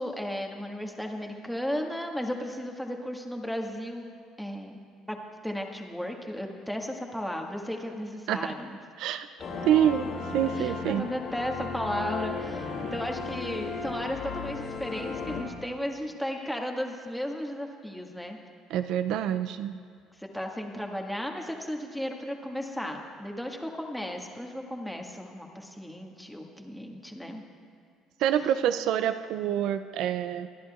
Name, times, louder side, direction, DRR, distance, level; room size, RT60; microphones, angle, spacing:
voice 1, 0.0-4.1 4.4-4.8 5.1-5.2 5.4-8.8 10.5-18.4 20.2-27.4, equal, ahead, 1 dB, 1.6 m, -35 dB
sound 1, 9.4-15.4, left 4 dB, 55° left, 2.6 m, -35 dB
voice 2, 9.6-10.1 10.3-11.1 18.7-19.8 28.2-30.5, right 10 dB, 70° right, 11 dB, 0.4 m, -26 dB
25.0 x 11.0 x 2.4 m, 2.2 s
hypercardioid pair, 65°, 0 cm